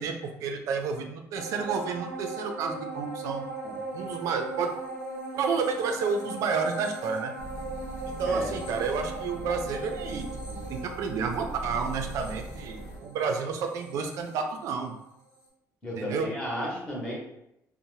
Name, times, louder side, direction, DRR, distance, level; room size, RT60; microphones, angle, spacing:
voice 1, 0.0-4.8 5.3-7.3 8.2-14.9 16.0-16.3, right 5 dB, 65° right, 4 dB, 0.4 m, -30 dB
sound 1, 1.4-15.0 15.4-15.5, right 3 dB, 75° left, 0.9 m, -39 dB
sound 2, 7.4-13.0, equal, 55° left, 0.5 m, -40 dB
voice 2, 15.8-17.1, equal, 15° left, -5 dB, 0.8 m, -33 dB
2.7 x 2.0 x 3.0 m, 0.83 s
cardioid pair, 175°, 6 cm